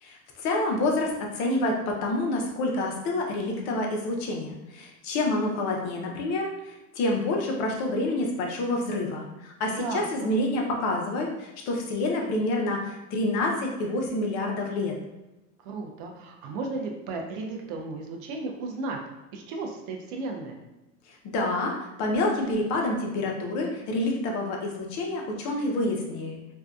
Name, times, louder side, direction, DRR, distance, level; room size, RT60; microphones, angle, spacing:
voice 1, 0.0-14.9 21.3-26.4, left 2 dB, 40° left, 0 dB, 0.5 m, -28 dB
voice 2, 9.7-10.3 15.6-19.0 19.3-20.6, right 3 dB, 45° right, 2 dB, 0.5 m, -34 dB
2.6 x 2.2 x 2.2 m, 1.0 s
supercardioid pair, 130°, 45 cm